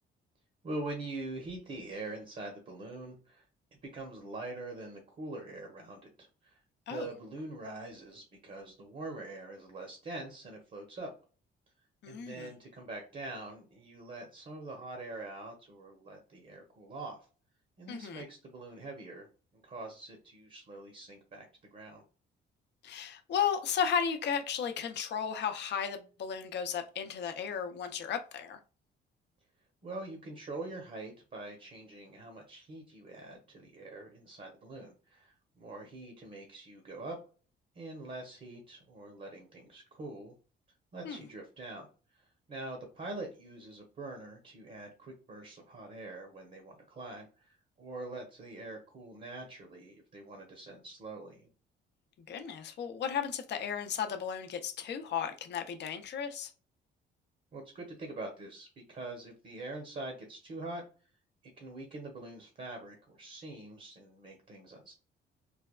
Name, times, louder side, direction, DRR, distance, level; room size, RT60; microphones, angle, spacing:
voice 1, 0.6-3.4 3.9-6.6 6.9-11.1 12.1-17.2 17.8-21.5 21.7-22.0 29.8-37.2 37.7-40.3 40.9-41.9 42.5-51.5 57.5-60.8 61.6-64.9, right 2 dB, 40° right, 0.9 m, -44 dB
voice 2, 12.0-12.5 17.9-18.2 22.8-28.6 41.0-41.3 52.3-56.5, left 7 dB, 60° left, 0.6 m, -34 dB
3.3 x 2.1 x 2.3 m
cardioid pair, 90°, 20 cm